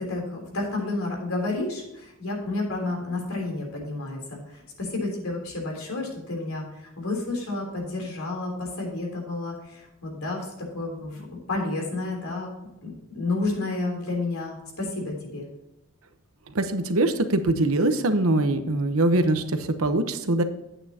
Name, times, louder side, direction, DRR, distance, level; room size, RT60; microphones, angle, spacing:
voice 1, 0.0-12.5 12.8-15.5, left 2 dB, 75° left, 0 dB, 3.4 m, -31 dB
voice 2, 16.5-20.4, right 2 dB, 75° right, 8 dB, 0.9 m, -23 dB
10.0 x 8.6 x 2.8 m, 0.93 s
head